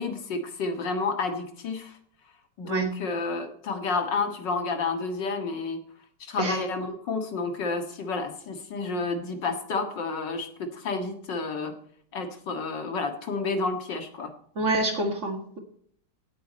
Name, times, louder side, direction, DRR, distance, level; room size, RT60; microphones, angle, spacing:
voice 1, 0.0-2.0 2.6-5.8 6.2-11.7 12.1-14.3, left 4 dB, 60° left, 6 dB, 2.4 m, -30 dB
voice 2, 14.6-15.6, right 2 dB, 35° right, 4 dB, 2.2 m, -27 dB
17.0 x 8.5 x 4.3 m, 0.63 s
omnidirectional pair, 2.3 m